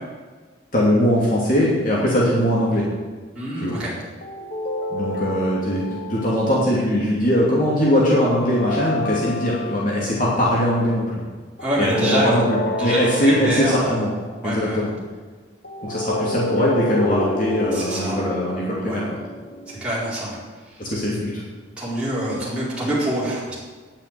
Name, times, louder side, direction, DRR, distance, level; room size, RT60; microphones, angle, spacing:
voice 1, 0.7-2.8 3.6-3.7 4.9-11.1 11.8-14.1 14.4-14.9 15.8-19.2 20.8-21.4, equal, 45° left, -5 dB, 2.7 m, -21 dB
voice 2, 3.3-3.9 11.6-12.4 12.8-14.0 14.4-14.8 17.7-18.2 18.8-19.0 19.7-20.4 21.8-23.5, right 1 dB, 5° right, -10 dB, 4.5 m, -25 dB
sound 1, 4.2-6.7 8.4-10.2 11.6-14.3 15.6-20.2, left 1 dB, 60° left, 1.6 m, -29 dB
9.8 x 8.9 x 9.6 m, 1.4 s
head